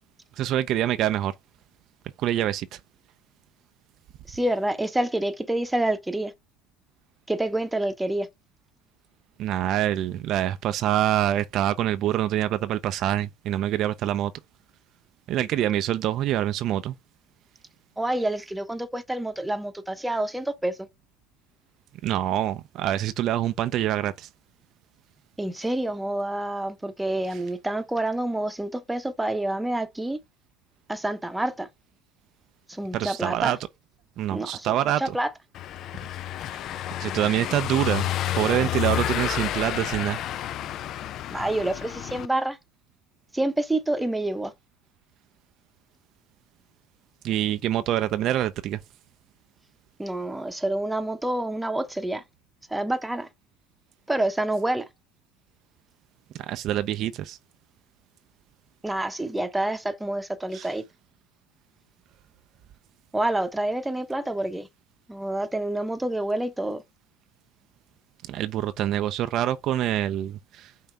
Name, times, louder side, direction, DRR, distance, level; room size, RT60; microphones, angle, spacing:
voice 1, 0.4-1.3 2.2-2.8 9.4-14.3 15.3-16.9 22.0-24.3 27.3-27.4 32.9-33.6 34.2-35.2 37.0-40.2 47.2-48.8 56.4-57.4 60.5-60.8 68.3-70.7, right 12 dB, 55° right, 0.5 m, -26 dB
voice 2, 4.3-6.3 7.3-8.3 18.0-20.9 25.4-30.2 30.9-31.7 32.7-33.5 34.3-34.7 35.0-35.3 41.3-42.6 43.3-44.5 50.0-52.2 52.7-53.3 54.1-54.9 58.8-60.8 63.1-64.7 65.1-66.8, right 1 dB, 5° right, 0.9 m, -27 dB
Car passing by / Engine, 35.5-42.3, left 12 dB, 55° left, 0.4 m, -30 dB
5.6 x 2.7 x 3.4 m
supercardioid pair, 90°, 0 cm